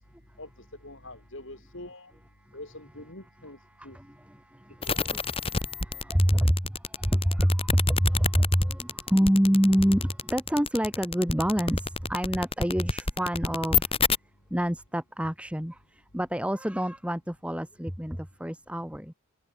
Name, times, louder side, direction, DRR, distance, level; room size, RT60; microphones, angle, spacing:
voice 1, 0.4-2.1 2.5-4.0 4.9-5.1, left 1 dB, 60° left, 6.0 m, -45 dB
voice 2, 3.8-13.9 14.5-19.1, equal, 5° right, 2.9 m, -27 dB
sound 1, 4.8-14.2, left 5 dB, 25° left, 2.4 m, -28 dB
head